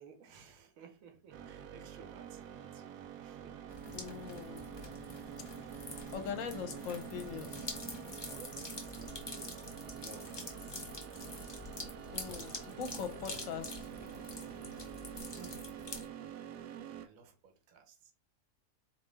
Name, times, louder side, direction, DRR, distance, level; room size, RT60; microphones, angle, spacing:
voice 1, 0.0-2.9 3.2-3.6 5.6-5.7 8.3-8.5 8.9-10.7 15.3-15.7 17.0-18.1, right 5 dB, 60° right, 1.3 m, -56 dB
sound 1, 1.3-17.1, right 9 dB, 80° right, 1.2 m, -47 dB
sound 2, 3.7-16.1, left 2 dB, 25° left, 0.5 m, -46 dB
voice 2, 3.9-4.6 6.1-7.7 12.1-13.9, left 7 dB, 60° left, 1.0 m, -41 dB
4.3 x 3.1 x 3.3 m
omnidirectional pair, 1.8 m